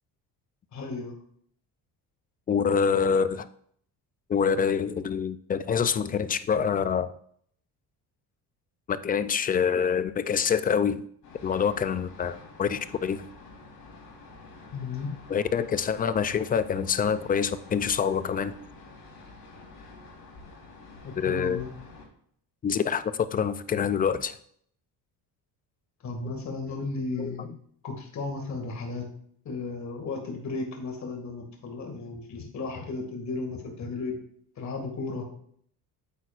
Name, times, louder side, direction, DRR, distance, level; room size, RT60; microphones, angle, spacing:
voice 1, 0.7-1.2 14.7-15.1 21.0-21.7 26.0-27.5 27.8-29.1 29.4-34.2 34.6-35.2, left 3 dB, 45° left, 3 dB, 2.1 m, -34 dB
voice 2, 2.5-3.5 4.3-7.1 8.9-11.0 11.4-13.3 15.3-18.6 21.2-21.6 22.6-23.0 23.3-24.4 27.2-27.4, left 7 dB, 25° left, 13 dB, 0.3 m, -26 dB
sound 1, 11.2-22.1, left 3 dB, 60° left, 3.4 m, -48 dB
9.0 x 8.3 x 2.4 m, 0.63 s
cardioid pair, 125°, 40 cm